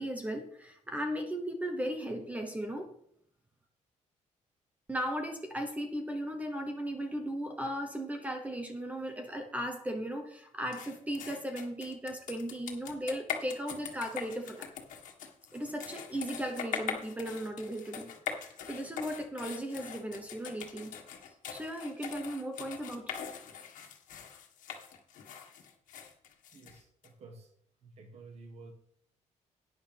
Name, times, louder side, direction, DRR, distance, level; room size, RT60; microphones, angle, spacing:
voice 1, 0.0-2.9 4.9-14.7 15.5-21.0 21.5-23.1, equal, 10° right, 5 dB, 0.9 m, -37 dB
sound 1, 10.7-27.1, left 7 dB, 85° left, 1.6 m, -42 dB
voice 2, 26.5-27.5 27.8-28.7, right 3 dB, 55° right, 2 dB, 1.6 m, -51 dB
11.5 x 9.7 x 3.4 m, 0.69 s
cardioid pair, 140°, 13 cm